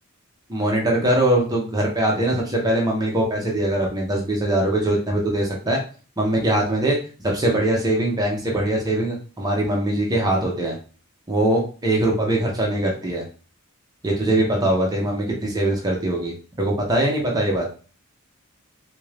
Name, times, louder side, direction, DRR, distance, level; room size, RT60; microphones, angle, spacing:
voice 1, 0.5-5.8 6.2-7.0 7.3-10.8 11.3-13.2 14.0-17.7, right 1 dB, 20° right, -2 dB, 0.8 m, -22 dB
3.6 x 2.7 x 3.2 m, 0.37 s
head